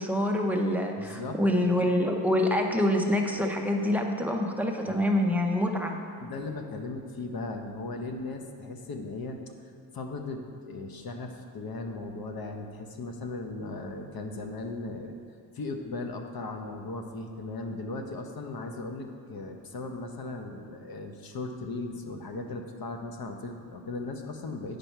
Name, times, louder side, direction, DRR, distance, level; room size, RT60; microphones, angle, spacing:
voice 1, 0.0-6.0, left 1 dB, 5° right, 2 dB, 0.6 m, -26 dB
voice 2, 1.0-1.4 4.9-5.0 6.2-9.4 9.9-15.1 15.5-24.8, left 3 dB, 50° left, 4 dB, 0.8 m, -37 dB
8.7 x 5.2 x 4.5 m, 2.3 s
cardioid pair, 105°, 46 cm